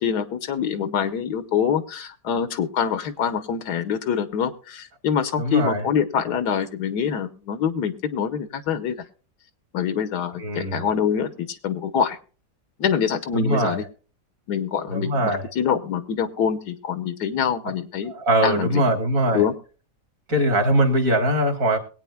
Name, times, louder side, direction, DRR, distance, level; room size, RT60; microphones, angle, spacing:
voice 1, 0.0-9.0 9.7-12.2 12.8-13.8 14.5-18.1 18.4-18.8 19.3-19.5, left 7 dB, 75° left, 11 dB, 1.5 m, -25 dB
voice 2, 5.4-5.8 10.4-10.8 13.3-13.8 14.9-15.4 18.2-19.4 20.3-21.8, right 1 dB, 55° right, 6 dB, 2.2 m, -21 dB
22.0 x 8.9 x 2.2 m, 0.37 s
omnidirectional pair, 1.8 m